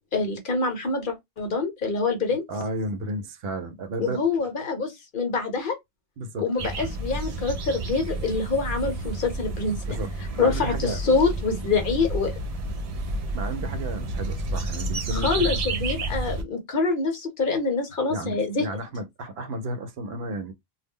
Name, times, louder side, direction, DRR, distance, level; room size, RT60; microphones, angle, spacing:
voice 1, 0.1-2.4 4.0-5.8 6.4-9.8 10.4-12.4 15.1-18.6, left 4 dB, 55° left, 0.9 m, -25 dB
voice 2, 2.5-4.2 6.2-6.5 9.9-10.1 10.3-11.0 13.0-15.5 18.1-20.5, right 2 dB, 70° right, 0.8 m, -33 dB
sound 1, 6.6-16.4, right 2 dB, 55° right, 0.4 m, -30 dB
2.2 x 2.0 x 3.5 m
omnidirectional pair, 1.1 m